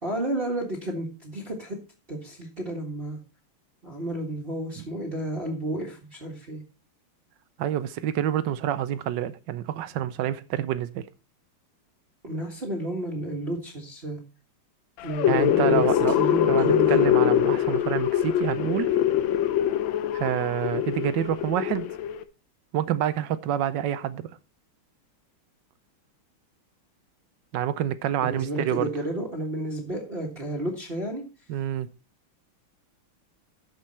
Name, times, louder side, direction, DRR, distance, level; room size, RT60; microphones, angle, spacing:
voice 1, 0.0-1.8 2.1-3.2 3.8-6.6 12.2-14.2 15.0-15.8 16.1-17.0 28.2-31.2, right 1 dB, 25° right, 1.7 m, -31 dB
voice 2, 7.6-11.0 15.3-16.1 16.5-19.0 20.1-21.9 22.7-24.3 27.5-28.9 31.5-31.9, right 11 dB, 70° right, 1.2 m, -27 dB
sound 1, 15.0-22.2, left 10 dB, 70° left, 1.4 m, -23 dB
13.0 x 5.3 x 4.3 m
omnidirectional pair, 2.4 m